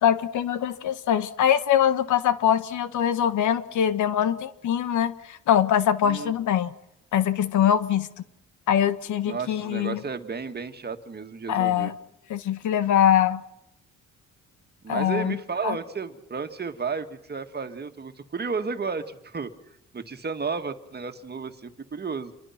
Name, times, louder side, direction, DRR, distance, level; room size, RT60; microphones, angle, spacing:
voice 1, 0.0-6.7 7.1-8.1 8.7-10.0 11.5-11.9 12.3-13.4 14.9-15.4 15.6-15.8, left 9 dB, 75° left, 1.4 m, -23 dB
voice 2, 6.0-6.3 9.3-11.9 14.8-19.5 19.9-22.3, right 5 dB, 35° right, 2.0 m, -33 dB
27.5 x 23.5 x 5.9 m
cardioid pair, 90°, 30 cm